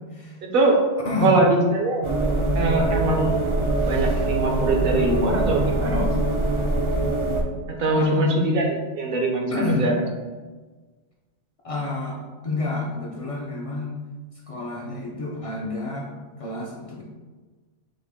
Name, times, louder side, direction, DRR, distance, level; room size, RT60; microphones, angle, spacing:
voice 1, 0.4-0.8 1.2-2.1 2.5-3.5 3.8-6.1 7.7-8.7 9.0-10.0, right 2 dB, 60° right, 1 dB, 0.8 m, -22 dB
voice 2, 1.0-1.4 3.6-3.8 7.9-8.4 9.5-9.9 11.6-13.9 14.5-16.1 16.4-17.0, left 3 dB, 50° left, -2 dB, 0.4 m, -28 dB
sound 1, 2.0-7.4, right 2 dB, 45° right, 0.4 m, -23 dB
5.0 x 2.1 x 3.5 m, 1.3 s
omnidirectional pair, 1.1 m